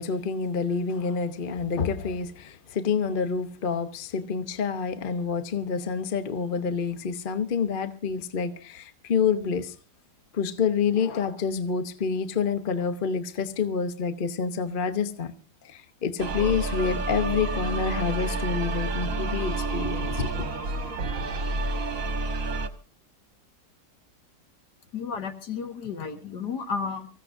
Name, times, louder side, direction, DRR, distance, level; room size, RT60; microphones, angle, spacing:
voice 1, 0.0-9.7 10.3-15.3 15.6-20.3, left 6 dB, 40° left, 0.7 m, -28 dB
sound 1, 16.2-22.7, right 2 dB, 45° right, 1.6 m, -29 dB
voice 2, 24.9-27.1, left 5 dB, 60° left, 2.0 m, -32 dB
25.0 x 15.5 x 2.6 m
omnidirectional pair, 2.1 m